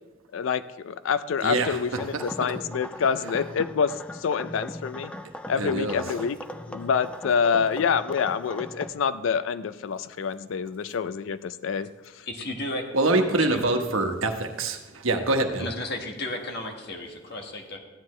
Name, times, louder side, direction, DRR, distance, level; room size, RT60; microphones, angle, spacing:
voice 1, 0.3-5.1 5.5-6.4 6.7-11.9 12.1-12.3, left 6 dB, 70° left, 14 dB, 0.4 m, -27 dB
voice 2, 1.4-1.8 2.1-2.2 5.6-6.0 12.9-15.7, right 2 dB, 80° right, 5 dB, 1.1 m, -25 dB
sound 1, 2.0-8.9, left 1 dB, 5° left, 0.4 m, -39 dB
voice 3, 12.3-12.8 13.2-13.6 15.6-17.8, left 1 dB, 55° left, 2 dB, 1.5 m, -34 dB
14.5 x 9.6 x 3.2 m, 1.2 s
head